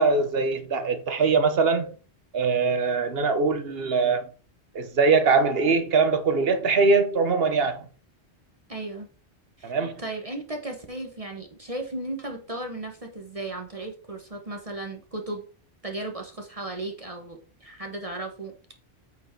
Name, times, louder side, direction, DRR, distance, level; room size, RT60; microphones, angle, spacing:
voice 1, 0.0-1.9 2.3-4.3 4.7-7.8 9.6-10.0, right 4 dB, 60° right, 1.1 m, -22 dB
voice 2, 8.7-9.1 9.6-9.7 10.0-15.4 15.8-18.5, right 2 dB, 35° right, 1.2 m, -35 dB
8.3 x 4.6 x 4.5 m
omnidirectional pair, 1.1 m